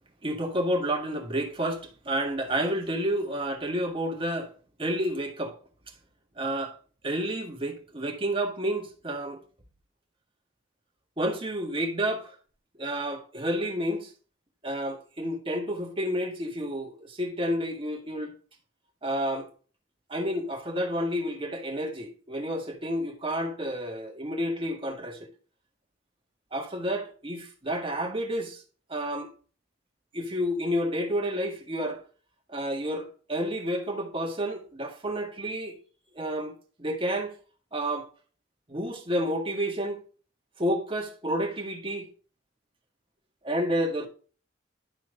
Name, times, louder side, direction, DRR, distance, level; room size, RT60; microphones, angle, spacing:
voice 1, 0.2-4.5 4.8-5.6 6.4-6.8 7.0-9.4 11.2-12.4 12.8-14.1 14.6-18.3 19.0-19.5 20.1-25.2 26.5-28.6 28.9-29.3 30.1-32.0 32.5-35.8 36.1-37.4 37.7-38.1 38.7-40.0 40.6-42.1 43.4-44.1, equal, 30° right, 1.7 m, -30 dB
11.5 x 4.5 x 3.8 m
head